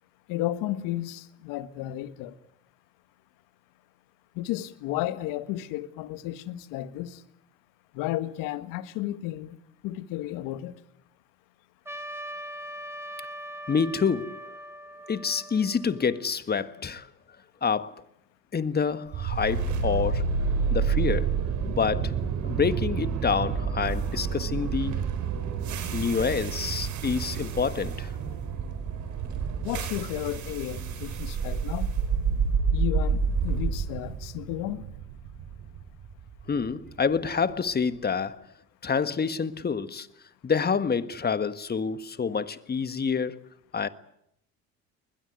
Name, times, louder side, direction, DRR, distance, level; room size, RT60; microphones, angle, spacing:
voice 1, 0.3-2.3 4.3-7.2 7.9-9.6 9.8-10.7 29.6-31.9 32.7-34.8, left 14 dB, 70° left, 1.7 m, -33 dB
Trumpet, 11.9-16.3, equal, 5° right, 2.8 m, -41 dB
voice 2, 13.7-14.5 15.1-17.1 17.6-18.0 18.5-20.3 20.7-21.3 21.7-22.2 22.4-25.0 25.9-28.1 36.5-38.5 38.8-40.1 40.4-43.4 43.7-43.9, left 6 dB, 30° left, 1.6 m, -27 dB
sound 1, 19.1-37.2, right 5 dB, 55° right, 4.0 m, -29 dB
21.5 x 21.0 x 9.6 m
hypercardioid pair, 70°, 34 cm